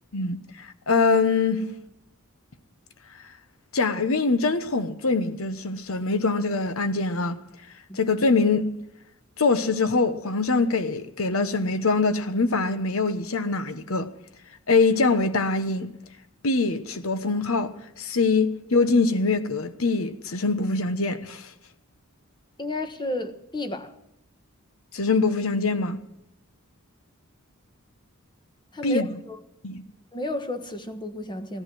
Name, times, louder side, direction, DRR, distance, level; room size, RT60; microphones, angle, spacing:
voice 1, 0.1-1.7 3.7-7.4 7.9-8.8 9.4-14.1 14.7-15.9 16.4-21.5 24.9-26.0 28.8-29.1 29.6-29.8, left 3 dB, 70° left, 1.1 m, -23 dB
voice 2, 22.6-23.9 28.7-29.4 30.1-31.6, left 1 dB, 20° left, 1.3 m, -32 dB
16.5 x 11.0 x 6.2 m
head